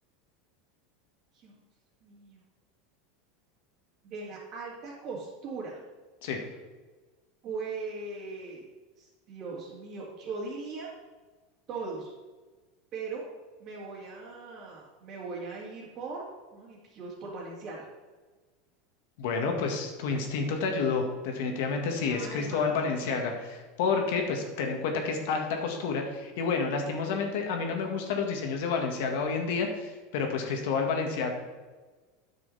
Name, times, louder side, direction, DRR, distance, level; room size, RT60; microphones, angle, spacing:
voice 1, 2.0-2.4 4.0-5.8 7.4-8.7 9.0-11.0 11.7-12.1 12.9-13.2 13.6-16.3 16.5-17.9 22.0-23.1 27.1-27.3, right 4 dB, 40° right, -7 dB, 2.3 m, -39 dB
voice 2, 19.2-23.3 23.8-31.3, left 5 dB, 70° left, 3 dB, 1.8 m, -29 dB
9.7 x 6.3 x 4.2 m, 1.3 s
supercardioid pair, 135°, 0 cm